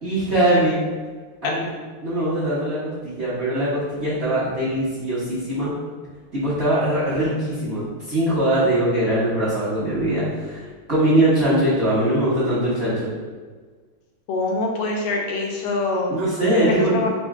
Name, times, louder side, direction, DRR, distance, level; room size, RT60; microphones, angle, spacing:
voice 1, 0.0-0.8 1.4-1.6 2.0-5.7 6.3-13.1 16.1-17.0, right 1 dB, 35° right, -10 dB, 1.2 m, -21 dB
voice 2, 14.3-16.1 16.7-17.1, left 3 dB, 90° left, -1 dB, 1.7 m, -24 dB
4.4 x 2.6 x 3.6 m, 1.5 s
omnidirectional pair, 2.4 m